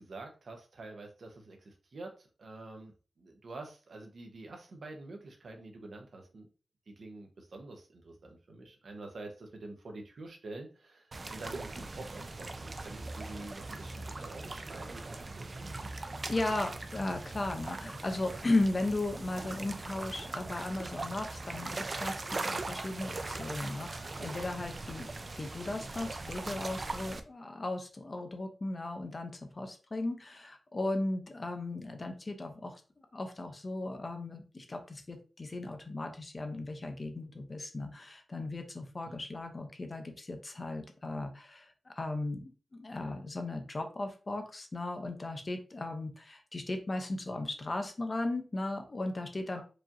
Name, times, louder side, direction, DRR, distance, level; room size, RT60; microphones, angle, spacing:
voice 1, 0.0-6.5 6.9-15.9 39.1-39.2 49.5-49.6, right 2 dB, 60° right, 3 dB, 0.8 m, -47 dB
sound 1, 11.1-27.2, right 2 dB, 35° right, 0.3 m, -40 dB
voice 2, 16.2-25.1 25.4-32.8 33.1-49.6, left 2 dB, 30° left, 6 dB, 0.6 m, -36 dB
4.8 x 2.9 x 2.5 m, 0.35 s
wide cardioid pair, 170°, 0 cm